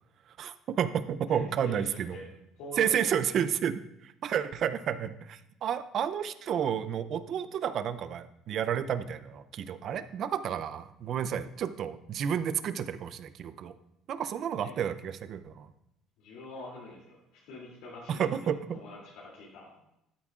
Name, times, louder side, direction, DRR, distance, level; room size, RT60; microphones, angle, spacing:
voice 1, 0.4-2.2 2.8-13.7 14.1-15.7 18.1-18.6, right 8 dB, 45° right, 13 dB, 0.5 m, -31 dB
voice 2, 1.3-2.3 2.6-3.3 14.6-14.7 16.2-17.2 17.4-19.8, left 2 dB, 85° left, -6 dB, 2.7 m, -45 dB
12.5 x 8.6 x 2.5 m, 0.84 s
cardioid pair, 150°, 0 cm